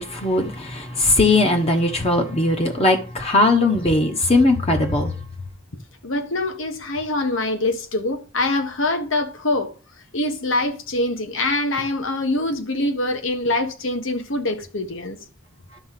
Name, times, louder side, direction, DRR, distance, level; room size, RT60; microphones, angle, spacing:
voice 1, 0.0-5.1, left 2 dB, 30° left, 1.1 m, -19 dB
voice 2, 6.0-9.7 10.1-15.2, left 2 dB, 65° left, 1.4 m, -24 dB
11.0 x 3.9 x 7.5 m
head